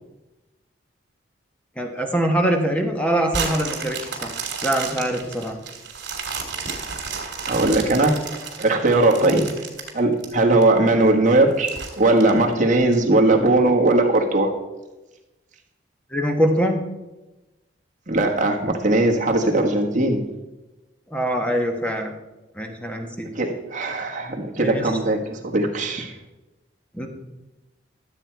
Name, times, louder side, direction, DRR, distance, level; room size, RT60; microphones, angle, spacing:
voice 1, 1.8-4.3 4.6-5.6 9.2-9.4 16.1-16.8 21.1-22.1 22.5-23.3 24.6-24.9 26.9-27.1, right 1 dB, 5° left, 3 dB, 1.1 m, -23 dB
sound 1, 3.3-10.6 11.1-11.2 11.7-12.9 13.5-13.6, right 5 dB, 60° right, 2.3 m, -32 dB
voice 2, 7.5-8.2 8.6-9.4 9.9-14.5 18.1-20.2 23.3-26.1, right 2 dB, 40° right, 2 dB, 1.4 m, -19 dB
12.5 x 7.8 x 4.5 m, 1.0 s
head